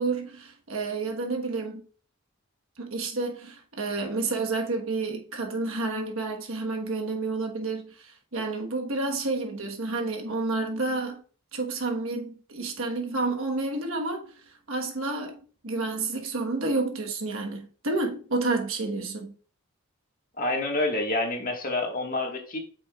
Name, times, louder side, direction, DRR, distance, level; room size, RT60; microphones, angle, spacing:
voice 1, 0.0-1.8 2.8-11.2 11.5-14.3 14.7-19.3, right 3 dB, 65° right, 1.2 m, -30 dB
voice 2, 20.4-22.6, left 2 dB, 40° left, 1.6 m, -28 dB
8.6 x 5.9 x 2.3 m
head